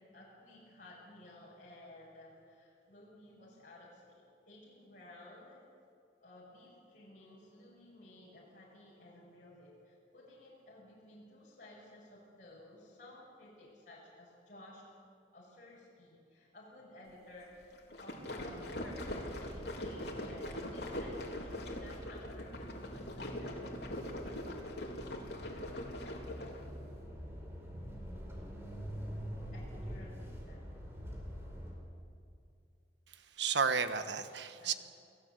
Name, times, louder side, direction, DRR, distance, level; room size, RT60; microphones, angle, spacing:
voice 1, 0.0-5.6 6.2-14.8 15.3-24.4 25.5-25.8 28.0-28.7 29.5-30.7 31.7-31.8 34.6-34.8, left 1 dB, 45° left, -5 dB, 5.9 m, -55 dB
sound 1, 17.7-26.6, left 1 dB, 60° left, 3.7 m, -42 dB
sound 2, 18.7-31.7, equal, 15° right, 4.8 m, -46 dB
voice 2, 33.4-34.7, right 5 dB, 75° right, 10 dB, 1.3 m, -32 dB
29.5 x 17.0 x 8.2 m, 2.4 s
head